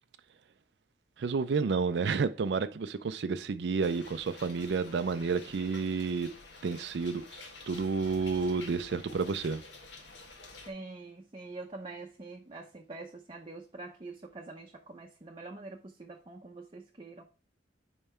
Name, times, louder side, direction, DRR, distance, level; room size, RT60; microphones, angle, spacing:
voice 1, 1.2-6.3 6.6-9.6, right 5 dB, 70° right, 0.4 m, -30 dB
sound 1, 3.8-10.7, left 3 dB, 85° left, 1.5 m, -50 dB
voice 2, 10.7-17.2, right 3 dB, 30° right, 0.7 m, -45 dB
5.5 x 4.6 x 4.3 m
head